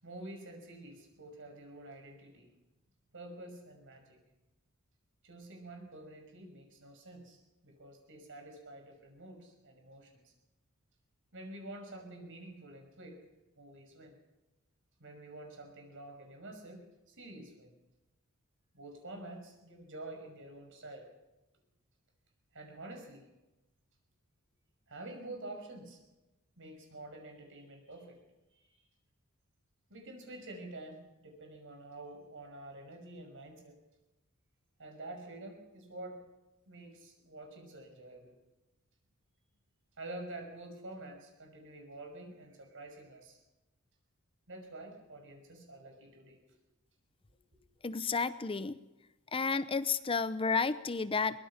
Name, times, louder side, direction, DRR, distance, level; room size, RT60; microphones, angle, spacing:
voice 1, 0.0-2.5 3.1-4.2 5.2-10.3 11.3-13.2 13.6-14.2 15.0-17.7 18.7-21.1 22.5-23.2 24.9-26.0 26.6-28.2 28.7-28.8 29.9-33.8 34.8-36.2 36.7-38.3 40.0-43.4 44.5-46.4, right 2 dB, 60° right, 4 dB, 5.9 m, -48 dB
voice 2, 47.8-48.8 49.3-51.4, left 4 dB, 25° left, 14 dB, 0.7 m, -31 dB
23.0 x 20.0 x 5.8 m, 1.0 s
head